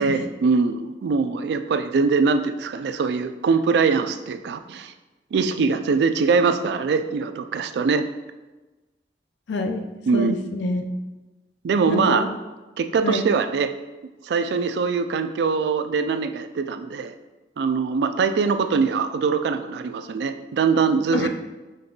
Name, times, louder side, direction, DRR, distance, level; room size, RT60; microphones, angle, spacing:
voice 1, 0.0-4.9 5.3-8.0 10.1-10.4 11.6-12.2 12.8-13.7 14.2-17.1 17.6-21.3, right 5 dB, 75° right, 9 dB, 0.3 m, -22 dB
voice 2, 9.5-10.8 11.9-12.3 13.0-13.3 21.1-21.3, left 2 dB, 85° left, 6 dB, 0.5 m, -27 dB
5.3 x 2.3 x 3.8 m, 1.1 s
head